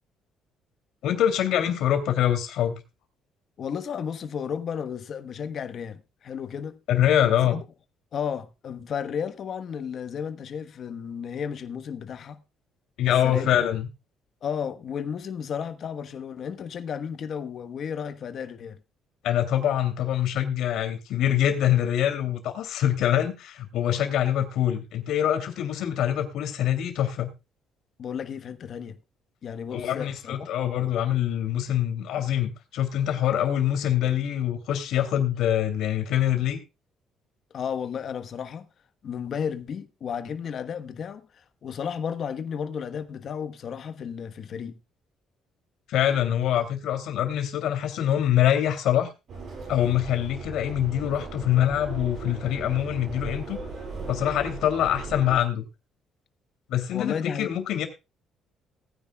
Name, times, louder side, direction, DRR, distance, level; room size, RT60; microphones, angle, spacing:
voice 1, 1.0-2.8 6.9-7.6 13.0-13.9 19.2-27.3 29.7-36.6 45.9-49.1 49.7-53.6 54.1-55.6 56.7-57.9, left 11 dB, 75° left, 2.9 m, -24 dB
voice 2, 3.6-6.8 7.5-7.6 8.1-12.4 13.1-13.6 14.4-18.8 28.0-29.0 29.4-30.5 37.5-38.7 39.0-44.7 56.9-57.5, left 7 dB, 50° left, 1.2 m, -33 dB
Subway metro underground, 49.3-55.4, right 4 dB, 50° right, 5.7 m, -37 dB
19.5 x 9.9 x 2.3 m
cardioid pair, 135°, 0 cm